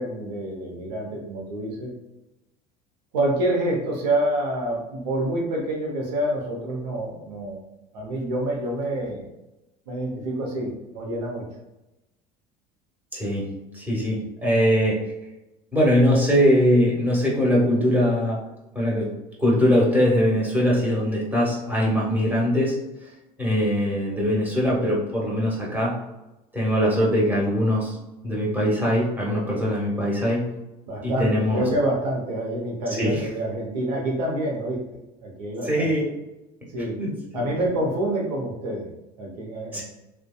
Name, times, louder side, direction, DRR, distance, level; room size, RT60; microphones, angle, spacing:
voice 1, 0.0-1.9 3.1-7.6 7.9-9.3 9.9-11.5 30.9-35.9 36.7-37.0 37.3-38.9 39.2-39.8, right 1 dB, 90° right, -1 dB, 0.7 m, -27 dB
voice 2, 13.1-13.4 13.7-15.0 15.7-18.4 18.7-19.1 19.4-22.7 23.4-25.9 26.5-27.9 28.2-30.4 31.0-31.6 33.0-33.3 35.6-36.0 37.0-37.5 39.7-39.8, equal, 10° right, -5 dB, 1.2 m, -21 dB
2.6 x 2.2 x 2.2 m, 0.98 s
hypercardioid pair, 75°, 20 cm